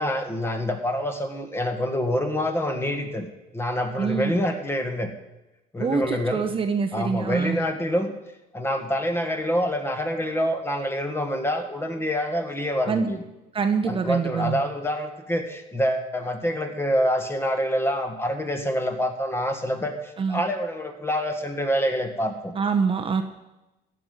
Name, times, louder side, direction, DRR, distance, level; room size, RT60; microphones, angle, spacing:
voice 1, 0.0-5.1 5.7-6.5 6.9-8.1 8.5-13.2 13.8-22.5, equal, 15° left, 5 dB, 1.7 m, -26 dB
voice 2, 4.0-4.3 5.8-7.6 12.9-13.1 13.5-14.6 20.2-20.4 22.6-23.2, right 5 dB, 30° right, 5 dB, 0.9 m, -25 dB
14.5 x 5.5 x 9.4 m, 0.99 s
cardioid pair, 110°, 17 cm